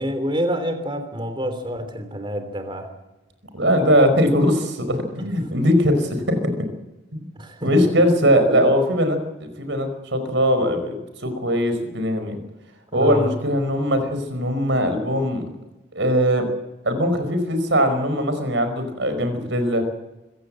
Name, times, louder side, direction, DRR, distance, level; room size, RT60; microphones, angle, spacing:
voice 1, 0.0-2.9 7.3-7.8 12.9-13.3, equal, 25° right, 8 dB, 3.2 m, -27 dB
voice 2, 3.5-6.7 7.6-12.4 12.9-15.5 15.9-16.5 16.8-19.8, equal, 60° right, 8 dB, 5.1 m, -20 dB
25.0 x 16.0 x 7.7 m, 1.0 s
head